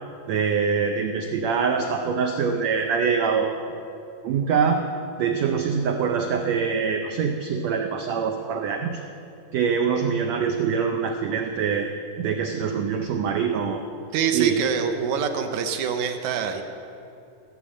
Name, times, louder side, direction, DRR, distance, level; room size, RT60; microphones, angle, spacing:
voice 1, 0.3-3.5 4.2-4.8 5.2-9.0 9.5-11.9 12.2-13.8 14.3-14.7, right 6 dB, 90° right, 4 dB, 1.5 m, -24 dB
voice 2, 14.1-16.6, right 7 dB, 70° right, 7 dB, 1.9 m, -25 dB
16.5 x 7.7 x 7.5 m, 2.6 s
omnidirectional pair, 4.0 m